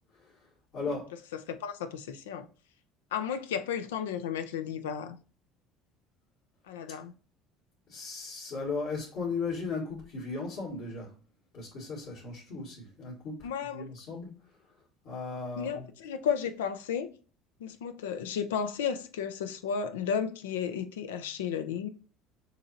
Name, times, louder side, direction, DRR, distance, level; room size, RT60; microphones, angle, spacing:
voice 1, 1.5-2.5 3.1-5.2 6.7-7.1 13.4-13.9 15.6-17.1 17.6-21.9, left 7 dB, 85° left, 0.5 m, -33 dB
voice 2, 7.9-11.1 11.5-14.3 15.0-15.8, left 4 dB, 60° left, 2.3 m, -36 dB
6.5 x 3.0 x 2.6 m
hypercardioid pair, 70°, 0 cm